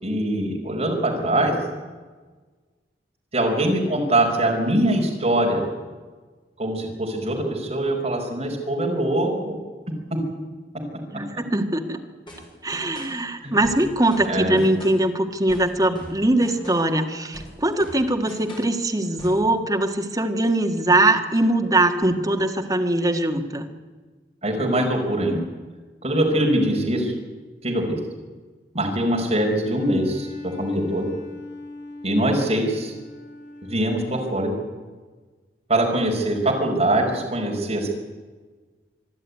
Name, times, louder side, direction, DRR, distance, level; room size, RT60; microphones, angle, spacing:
voice 1, 0.0-1.5 3.3-5.6 6.6-9.6 13.4-13.6 14.2-14.6 24.4-25.4 26.0-27.1 27.6-28.0 28.7-31.1 32.0-32.9 33.6-34.6 35.7-37.9, right 1 dB, 35° right, 0 dB, 5.0 m, -23 dB
voice 2, 11.1-12.0 12.6-23.6, right 1 dB, 20° right, 4 dB, 1.7 m, -21 dB
sound 1, 12.3-13.2 13.6-15.1 15.5-17.0 17.3-18.8 19.2-19.5, equal, 30° left, 6.1 m, -41 dB
Bowed string instrument, 29.6-34.3, left 3 dB, 85° left, 5.7 m, -40 dB
25.5 x 11.5 x 9.6 m, 1.4 s
head